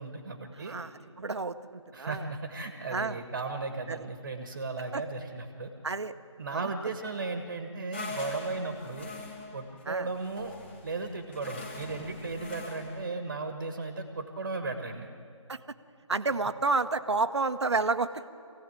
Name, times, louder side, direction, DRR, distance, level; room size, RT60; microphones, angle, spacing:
voice 1, 0.0-0.8 1.9-5.7 6.4-9.1 9.5-10.6 10.8-15.1, right 3 dB, 35° right, 6 dB, 1.6 m, -36 dB
voice 2, 0.6-2.3 2.9-3.2 3.9-4.0 4.9-5.0 5.8-6.1 6.5-6.7 9.9-10.1 15.5-15.6 16.1-18.3, right 3 dB, 55° right, 11 dB, 1.1 m, -30 dB
sound 1, 7.9-13.1, left 3 dB, 20° left, 2.0 m, -43 dB
24.5 x 16.5 x 9.0 m, 2.4 s
figure-of-eight pair, 165°, 17 cm